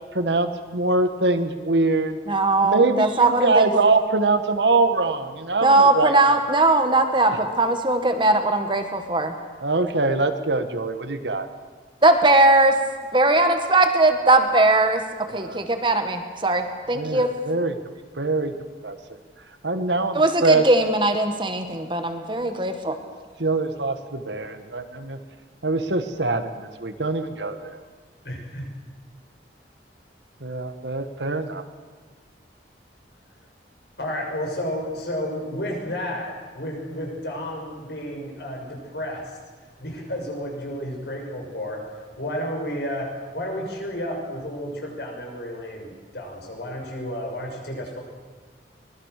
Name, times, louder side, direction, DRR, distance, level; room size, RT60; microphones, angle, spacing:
voice 1, 0.1-2.2 2.6-6.1 9.6-11.5 15.3-15.6 16.9-17.8 18.2-18.6 18.8-19.0 19.6-20.6 23.4-25.2 25.6-27.8 30.4-31.6, right 3 dB, 75° right, 8 dB, 1.8 m, -23 dB
voice 2, 2.3-3.8 5.6-9.3 12.0-12.8 13.1-17.3 20.1-23.0, right 2 dB, 25° right, 6 dB, 1.8 m, -19 dB
voice 3, 28.2-28.7 34.0-39.4 39.8-41.8 42.2-43.1 43.3-48.0, equal, 65° left, 1 dB, 6.4 m, -31 dB
24.5 x 20.5 x 6.8 m, 1.4 s
head